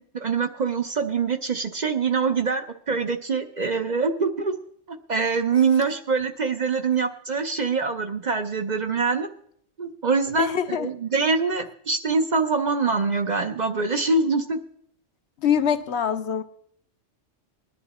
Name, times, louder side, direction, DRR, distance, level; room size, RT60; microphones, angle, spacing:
voice 1, 0.2-4.6 4.9-9.3 9.8-14.6, right 4 dB, 45° right, 6 dB, 0.7 m, -24 dB
voice 2, 10.4-10.9 15.4-16.4, left 8 dB, 70° left, 10 dB, 1.0 m, -24 dB
20.5 x 10.5 x 4.2 m, 0.69 s
omnidirectional pair, 1.2 m